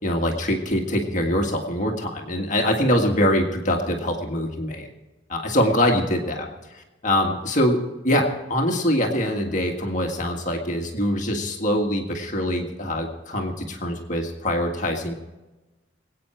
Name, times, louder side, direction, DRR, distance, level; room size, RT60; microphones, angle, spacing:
voice 1, 0.0-4.9 5.3-6.5 6.8-7.8 8.0-15.1, left 1 dB, 40° left, 2 dB, 1.7 m, -23 dB
24.5 x 8.8 x 4.5 m, 1.1 s
head